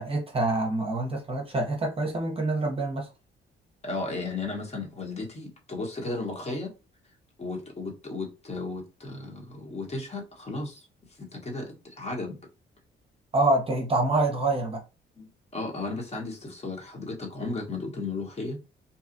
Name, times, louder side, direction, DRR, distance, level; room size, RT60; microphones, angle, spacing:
voice 1, 0.0-3.1 13.3-14.8, right 2 dB, 30° right, 0.8 m, -26 dB
voice 2, 3.8-6.7 7.4-10.9 11.2-12.4 15.2-18.6, left 3 dB, 35° left, 1.1 m, -34 dB
2.7 x 2.4 x 2.6 m
cardioid pair, 90°, 20 cm